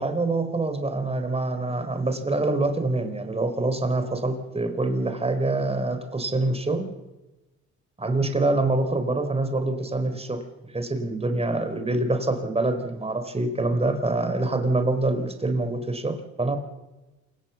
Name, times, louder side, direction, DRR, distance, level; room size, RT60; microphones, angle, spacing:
voice 1, 0.0-6.9 8.0-10.4 10.7-16.6, right 2 dB, 20° right, 8 dB, 4.2 m, -25 dB
28.0 x 17.0 x 7.2 m, 1.1 s
cardioid pair, 90°, 30 cm